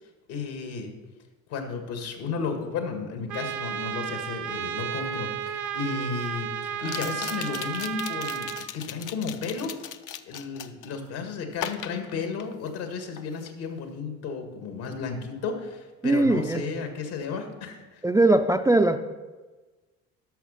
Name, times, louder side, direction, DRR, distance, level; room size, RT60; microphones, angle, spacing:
voice 1, 0.3-0.9 1.5-9.8 10.2-17.8, left 5 dB, 70° left, 5 dB, 2.0 m, -33 dB
Trumpet, 3.3-8.7, right 9 dB, 50° right, 0.8 m, -33 dB
sound 1, 5.1-5.2 6.8-11.0 11.5-12.9 13.2-13.5, left 10 dB, 50° left, 0.7 m, -38 dB
voice 2, 16.0-16.6 18.0-19.0, right 2 dB, 10° right, 7 dB, 0.4 m, -20 dB
11.5 x 6.3 x 5.5 m, 1.3 s
hypercardioid pair, 65°, 40 cm